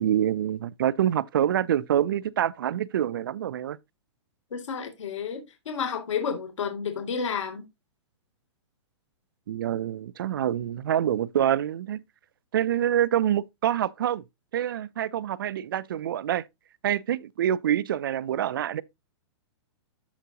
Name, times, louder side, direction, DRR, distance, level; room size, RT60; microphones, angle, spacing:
voice 1, 0.0-3.8 9.5-12.0 12.5-14.2 14.5-16.4 16.8-18.8, right 10 dB, 45° right, 0.4 m, -26 dB
voice 2, 4.5-7.6, left 6 dB, 90° left, 2.7 m, -31 dB
13.0 x 4.6 x 2.8 m
hypercardioid pair, 180°, 15 cm